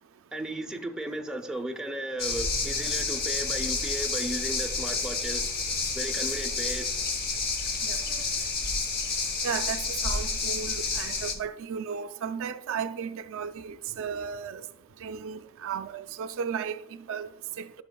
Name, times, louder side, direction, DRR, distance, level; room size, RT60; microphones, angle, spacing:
voice 1, 0.3-5.7 5.9-7.0, right 1 dB, 5° right, 0.6 m, -35 dB
sound 1, 2.2-11.4, left 4 dB, 45° left, 0.9 m, -30 dB
voice 2, 9.4-14.6 15.0-16.8 17.1-17.3 17.6-17.7, right 7 dB, 65° right, 0.4 m, -34 dB
12.0 x 5.9 x 2.3 m
head